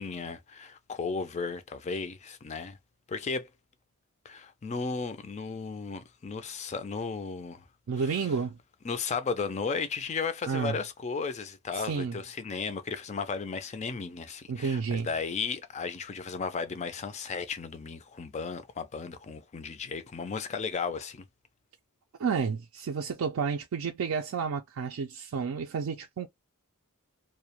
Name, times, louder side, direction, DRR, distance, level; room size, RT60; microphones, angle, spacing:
voice 1, 0.0-2.8 3.1-3.5 4.3-7.6 8.0-8.2 8.8-21.2, left 5 dB, 30° left, 0.3 m, -35 dB
voice 2, 7.9-8.6 10.5-10.8 11.7-12.2 14.5-15.1 22.2-26.3, right 5 dB, 65° right, 0.4 m, -31 dB
2.3 x 2.1 x 2.8 m
head